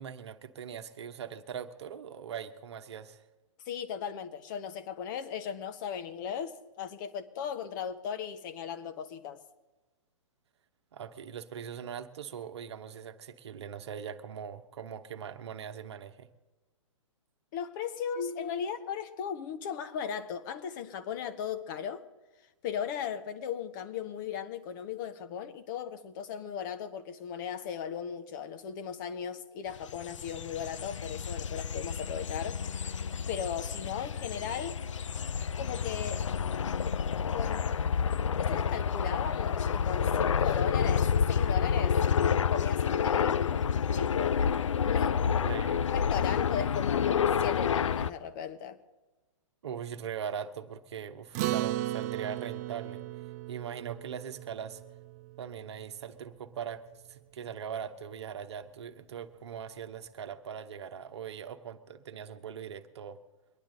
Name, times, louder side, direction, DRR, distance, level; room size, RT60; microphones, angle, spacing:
voice 1, 0.0-3.2 10.9-16.3 44.8-45.0 45.3-45.9 49.6-53.0 53.5-54.8 55.4-63.2, right 8 dB, 55° right, 1.0 m, -41 dB
voice 2, 3.7-9.4 17.5-22.1 22.6-32.6 33.3-34.8 35.6-36.3 37.3-37.7 38.3-42.0 42.5-43.6 43.9-44.4 44.8-45.2 45.9-48.8, left 8 dB, 35° left, 1.0 m, -37 dB
sound 1, 29.8-48.1, left 7 dB, 65° left, 0.5 m, -29 dB
Acoustic guitar, 51.3-56.0, right 15 dB, 30° right, 0.5 m, -36 dB
23.5 x 10.5 x 3.9 m
figure-of-eight pair, 115°, 17 cm